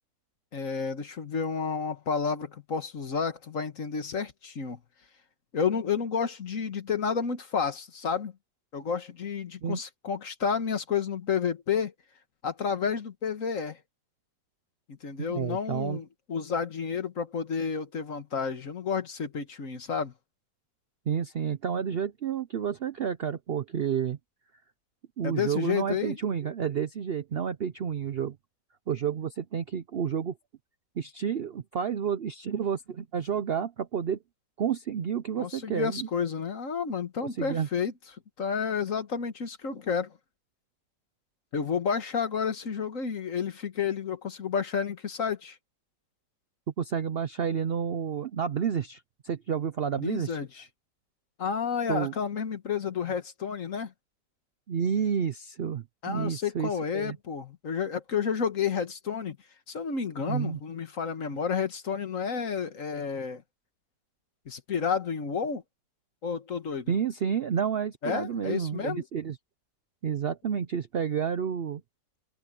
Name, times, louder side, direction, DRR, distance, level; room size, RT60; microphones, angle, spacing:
voice 1, 0.5-4.8 5.5-8.3 8.7-11.9 12.4-13.8 14.9-20.1 25.2-26.2 35.4-37.9 38.4-40.1 41.5-45.6 50.0-50.6 51.4-53.9 56.0-59.4 59.7-63.4 64.4-65.6 66.2-66.9 68.0-69.0, left 6 dB, 50° left, 1.8 m, -31 dB
voice 2, 15.2-16.0 21.1-24.2 25.2-28.4 28.9-30.3 31.0-34.2 34.6-36.1 37.2-37.7 46.8-50.4 51.9-52.1 54.7-57.2 60.3-60.6 66.9-69.4 70.0-71.8, right 7 dB, 85° right, 0.5 m, -30 dB
omnidirectional pair, 1.9 m